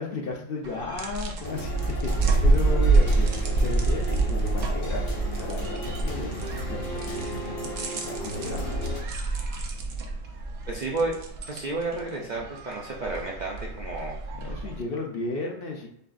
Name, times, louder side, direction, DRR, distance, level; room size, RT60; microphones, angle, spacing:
voice 1, 0.0-5.1 5.4-8.6 14.3-15.9, left 3 dB, 55° left, 0 dB, 0.8 m, -35 dB
sound 1, 0.6-14.8, right 2 dB, 80° right, 1.1 m, -27 dB
sound 2, 1.4-9.0, equal, 70° left, 1.6 m, -35 dB
sound 3, 2.4-7.6, left 1 dB, 90° left, 2.2 m, -47 dB
voice 2, 10.7-11.2 11.5-14.2, right 3 dB, 50° right, -2 dB, 0.5 m, -31 dB
6.7 x 2.4 x 2.5 m, 0.74 s
omnidirectional pair, 1.3 m